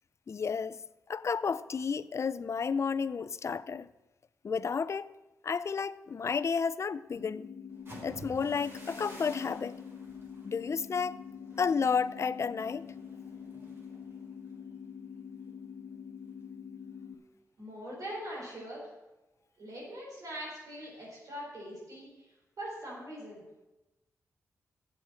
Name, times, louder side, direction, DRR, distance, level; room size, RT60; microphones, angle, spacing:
voice 1, 0.3-0.8 1.1-3.9 4.4-5.1 5.4-7.5 8.0-9.8 10.4-11.2 11.6-12.9, left 5 dB, 50° left, 0.4 m, -31 dB
sound 1, 7.1-17.1, left 7 dB, 75° left, 0.9 m, -45 dB
sound 2, 7.7-15.5 15.9-16.2 16.6-17.0, right 1 dB, 40° right, 4.2 m, -53 dB
voice 2, 17.6-18.8 19.6-23.4, equal, 65° right, 4.4 m, -42 dB
8.1 x 7.7 x 7.5 m
cardioid pair, 75°, 6 cm